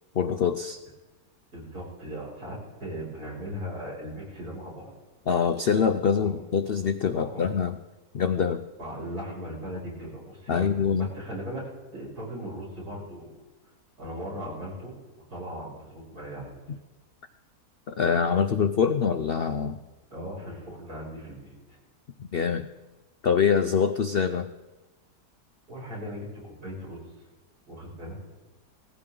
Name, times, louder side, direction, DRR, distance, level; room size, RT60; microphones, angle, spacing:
voice 1, 0.1-0.8 5.3-7.8 8.1-8.7 10.5-11.1 16.7-16.8 17.9-19.8 22.2-22.7 23.2-24.5, left 6 dB, 65° left, 8 dB, 0.5 m, -24 dB
voice 2, 1.5-4.9 6.2-6.3 7.1-7.5 8.8-13.4 14.0-16.5 20.1-21.5 25.7-27.0 27.7-28.2, equal, 65° right, -5 dB, 7.1 m, -38 dB
19.5 x 15.5 x 3.9 m, 1.1 s
omnidirectional pair, 1.8 m